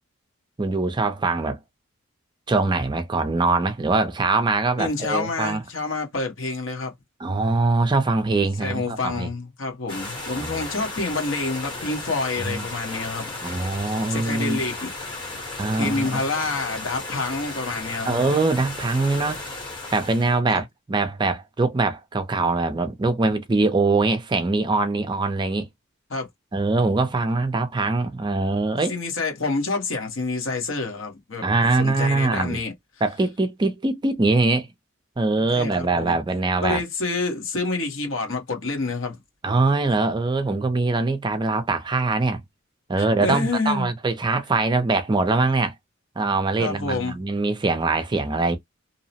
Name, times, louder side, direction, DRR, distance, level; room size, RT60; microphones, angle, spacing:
voice 1, 0.6-1.6 2.5-5.6 7.2-9.3 10.3-10.7 12.4-12.6 13.4-14.6 15.6-16.2 18.1-19.4 19.9-25.7 26.5-28.9 31.4-32.6 33.0-34.7 35.2-36.8 39.4-42.4 42.9-45.7 46.2-48.6, right 3 dB, 20° right, 0.4 m, -23 dB
voice 2, 4.8-6.9 8.6-13.3 14.1-14.9 15.7-18.2 20.5-20.6 26.1-26.3 28.9-31.4 31.8-32.7 35.5-36.1 36.6-39.2 43.0-43.9 46.6-47.2, left 3 dB, 65° left, 1.0 m, -28 dB
sound 1, 9.9-20.4, left 2 dB, 25° left, 0.9 m, -35 dB
2.7 x 2.0 x 2.7 m
head